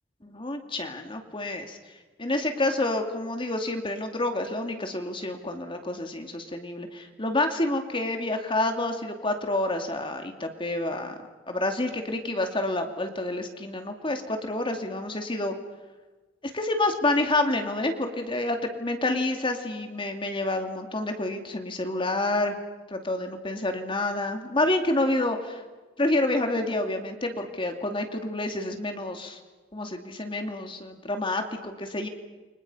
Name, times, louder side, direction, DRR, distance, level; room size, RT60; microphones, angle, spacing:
voice 1, 0.2-1.8 2.2-11.1 11.5-15.5 16.5-22.6 22.9-25.6 26.0-29.4 29.7-32.1, left 2 dB, 25° left, 5 dB, 2.5 m, -28 dB
29.5 x 25.0 x 5.6 m, 1.3 s
head